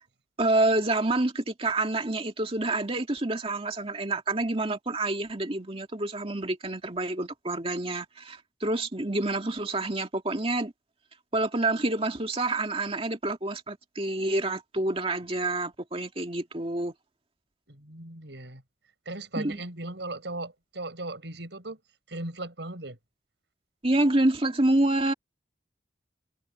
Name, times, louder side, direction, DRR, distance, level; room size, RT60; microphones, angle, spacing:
voice 1, 0.4-10.7 11.3-16.9 19.4-19.6 23.8-25.1, right 2 dB, 30° right, 2.3 m, -27 dB
voice 2, 17.7-18.6 19.1-21.8 22.1-23.0, right 2 dB, 70° right, 6.1 m, -37 dB
head